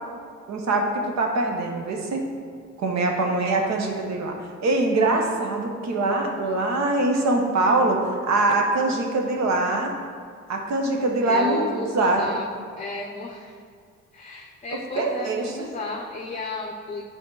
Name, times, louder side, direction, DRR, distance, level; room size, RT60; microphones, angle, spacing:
voice 1, 0.5-2.2 2.8-9.9 10.5-12.3 14.7-15.5, right 2 dB, 65° right, 2 dB, 1.0 m, -23 dB
voice 2, 11.2-12.5 12.8-13.6 14.1-17.0, left 3 dB, 25° left, 0 dB, 0.6 m, -33 dB
7.0 x 4.6 x 3.9 m, 2.1 s
cardioid pair, 90°, 30 cm